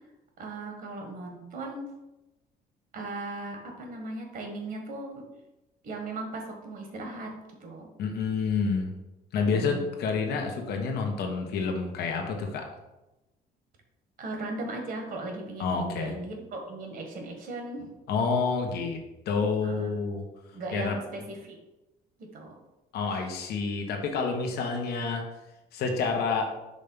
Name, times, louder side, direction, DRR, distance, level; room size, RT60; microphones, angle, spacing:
voice 1, 0.4-1.9 2.9-5.2 5.8-7.3 7.6-7.9 9.4-9.9 14.2-17.9 19.6-20.0 20.5-21.6 22.2-22.5, right 2 dB, 55° right, 3 dB, 1.4 m, -37 dB
voice 2, 8.0-8.9 9.3-12.6 15.6-16.1 18.1-19.0 19.3-20.2 20.7-21.0 22.9-25.2 25.7-26.5, left 5 dB, 70° left, 3 dB, 1.1 m, -28 dB
5.2 x 3.4 x 5.3 m, 0.99 s
cardioid pair, 110°, 17 cm